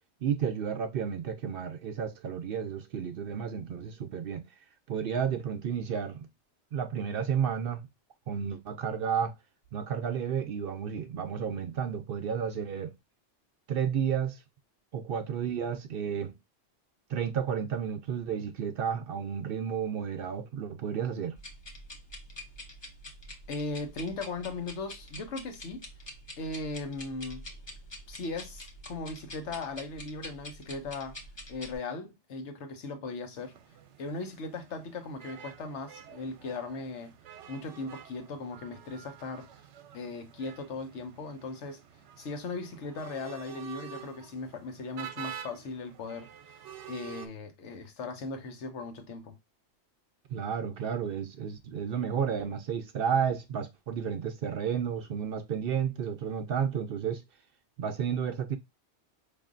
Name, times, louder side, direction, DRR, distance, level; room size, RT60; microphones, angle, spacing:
voice 1, 0.2-4.4 4.9-6.3 6.7-7.8 8.3-9.3 9.7-12.9 13.7-14.4 14.9-16.3 17.1-21.4 50.3-57.2 57.8-58.6, right 7 dB, 60° right, 0.7 m, -32 dB
sound 1, 21.4-31.8, left 1 dB, 30° left, 0.7 m, -46 dB
voice 2, 23.5-25.8 26.4-27.4 28.1-31.2 31.5-33.5 34.0-37.1 37.5-39.5 39.9-41.8 42.2-46.3 46.9-49.4, left 3 dB, 85° left, 1.2 m, -38 dB
sound 2, 33.3-47.3, right 9 dB, 85° right, 0.9 m, -48 dB
4.9 x 2.6 x 2.4 m
omnidirectional pair, 1.2 m